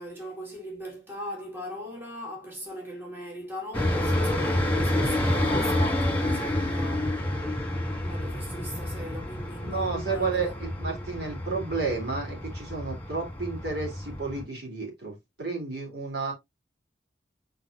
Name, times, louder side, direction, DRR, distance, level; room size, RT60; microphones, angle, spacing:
voice 1, 0.0-7.4 8.0-11.1, equal, 15° right, 2.0 m, -40 dB
sound 1, 3.7-14.4, left 1 dB, 10° left, 2.3 m, -29 dB
voice 2, 9.6-16.3, right 4 dB, 70° right, 3.6 m, -32 dB
7.9 x 4.8 x 2.6 m
head